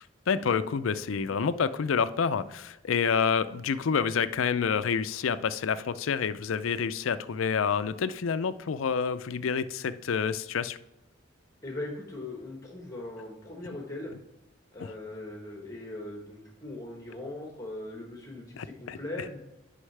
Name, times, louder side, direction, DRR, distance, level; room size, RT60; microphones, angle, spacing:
voice 1, 0.3-10.8 18.6-19.0, left 6 dB, 90° left, 13 dB, 0.4 m, -28 dB
voice 2, 11.6-14.1 14.7-19.4, left 2 dB, 15° left, -1 dB, 1.2 m, -40 dB
9.8 x 5.6 x 3.3 m, 0.95 s
head